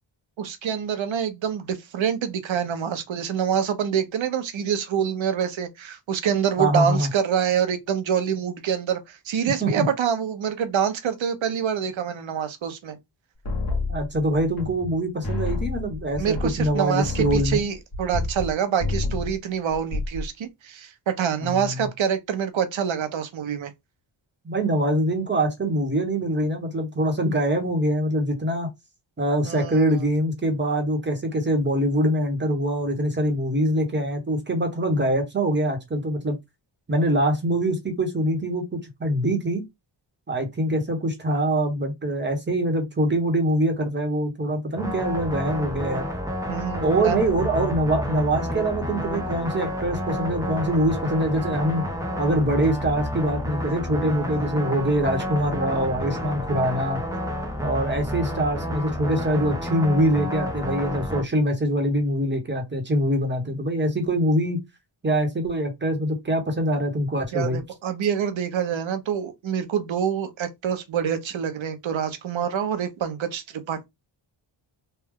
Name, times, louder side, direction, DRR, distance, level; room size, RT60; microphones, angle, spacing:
voice 1, 0.4-13.0 16.2-23.7 29.4-30.0 46.5-47.3 67.3-73.8, right 8 dB, 75° right, 0.8 m, -26 dB
voice 2, 6.6-7.1 9.6-9.8 13.9-17.6 21.4-21.9 24.4-28.7 29.2-36.4 36.9-39.6 40.3-46.1 46.8-51.9 52.2-57.0 57.6-64.6 65.0-67.6, right 1 dB, 25° right, 1.0 m, -24 dB
sound 1, 13.4-15.0 15.2-18.5 18.8-19.4 19.7-20.3, left 3 dB, 45° left, 1.3 m, -29 dB
sound 2, 44.8-61.2, equal, 5° right, 0.6 m, -30 dB
3.3 x 2.2 x 3.5 m
wide cardioid pair, 160°, 46 cm